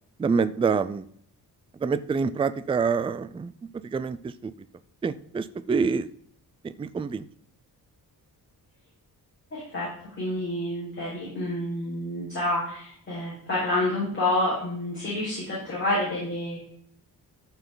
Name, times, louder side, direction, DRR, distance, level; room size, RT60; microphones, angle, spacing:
voice 1, 0.2-1.1 1.8-4.5 5.0-6.1 6.6-7.3, right 5 dB, 15° right, 14 dB, 0.3 m, -27 dB
voice 2, 10.2-16.6, left 1 dB, 30° left, -8 dB, 4.8 m, -28 dB
14.0 x 5.6 x 3.9 m, 0.64 s
wide cardioid pair, 170°, 37 cm